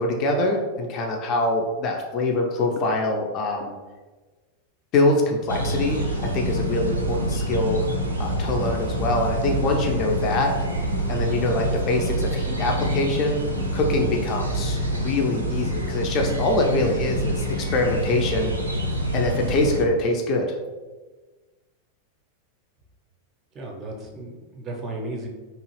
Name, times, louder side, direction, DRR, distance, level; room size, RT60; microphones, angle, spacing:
voice 1, 0.0-3.8 4.9-7.9 8.2-10.5 11.1-13.4 13.7-18.5 19.1-20.5, left 2 dB, 35° left, 1 dB, 0.4 m, -24 dB
sound 1, 5.5-19.9, equal, 80° right, 0.4 m, -26 dB
voice 2, 23.5-25.3, right 2 dB, 25° right, -1 dB, 0.5 m, -34 dB
2.8 x 2.4 x 3.1 m, 1.3 s
figure-of-eight pair, 90°, 0 cm